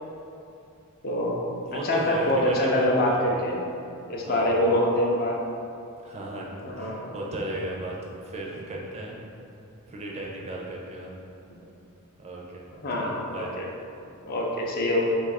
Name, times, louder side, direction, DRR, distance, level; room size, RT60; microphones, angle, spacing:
voice 1, 1.0-1.4 1.7-3.6 4.1-5.4 6.6-7.1 12.8-13.7 14.2-15.1, left 1 dB, 45° left, -2 dB, 0.4 m, -25 dB
voice 2, 1.7-3.4 4.2-4.7 6.0-9.2 9.9-11.1 12.2-12.6 12.9-13.6, right 1 dB, 30° right, -2 dB, 0.4 m, -35 dB
2.6 x 2.4 x 4.0 m, 2.6 s
head